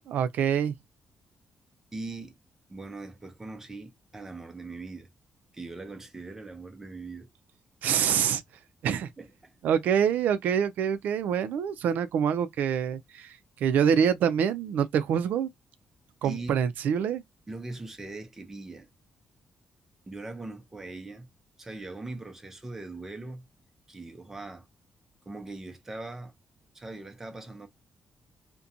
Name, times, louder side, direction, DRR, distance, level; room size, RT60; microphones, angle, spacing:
voice 1, 0.1-0.7 7.8-8.4 8.8-9.1 9.6-15.5 16.2-17.2, right 8 dB, 80° right, 0.3 m, -26 dB
voice 2, 1.9-2.4 2.7-5.1 5.5-7.3 9.2-9.5 16.2-16.6 17.5-18.9 20.1-21.3 21.6-23.4 23.9-24.7 25.3-26.3 26.7-27.7, right 2 dB, 15° right, 0.6 m, -40 dB
2.5 x 2.2 x 2.5 m
cardioid pair, 155°, 3 cm